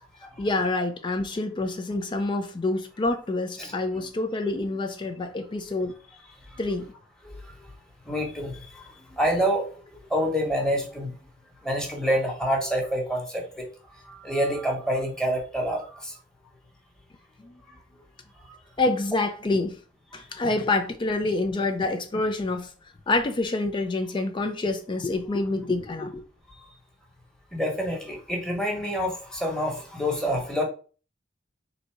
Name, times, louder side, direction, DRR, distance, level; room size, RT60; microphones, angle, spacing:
voice 1, 0.4-6.0 6.6-6.9 17.4-17.5 18.8-19.8 20.1-22.7 23.1-26.2, left 2 dB, 25° left, 0.4 m, -27 dB
voice 2, 3.6-4.1 7.2-7.4 8.1-8.8 9.1-9.7 10.1-11.1 11.6-13.7 14.0-16.1 27.5-30.6, equal, 5° left, 1.1 m, -27 dB
3.9 x 2.7 x 4.5 m
head